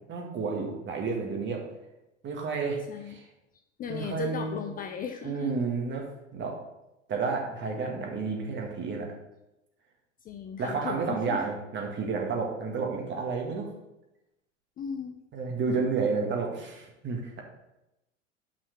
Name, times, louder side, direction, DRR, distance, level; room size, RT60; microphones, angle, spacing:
voice 1, 0.1-1.6 2.2-3.3 3.9-4.7 5.2-6.0 6.3-6.6 7.1-9.1 10.6-13.7 15.3-17.4, right 4 dB, 30° right, 1 dB, 2.0 m, -31 dB
voice 2, 2.9-3.2 3.8-5.6 10.2-11.4 14.8-15.2, left 7 dB, 25° left, 5 dB, 0.5 m, -37 dB
6.0 x 5.6 x 6.8 m, 0.92 s
figure-of-eight pair, 85°, 36 cm